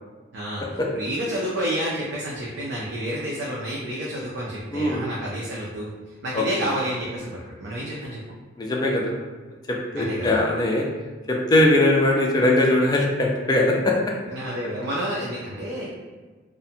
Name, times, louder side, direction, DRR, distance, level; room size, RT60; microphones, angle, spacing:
voice 1, 0.3-5.9 6.2-8.2 9.9-10.4 14.3-15.9, equal, 60° right, -5 dB, 0.4 m, -29 dB
voice 2, 8.6-9.0 9.7-10.9 11.3-13.9, left 1 dB, 20° left, -1 dB, 0.3 m, -20 dB
2.4 x 2.1 x 2.7 m, 1.3 s
head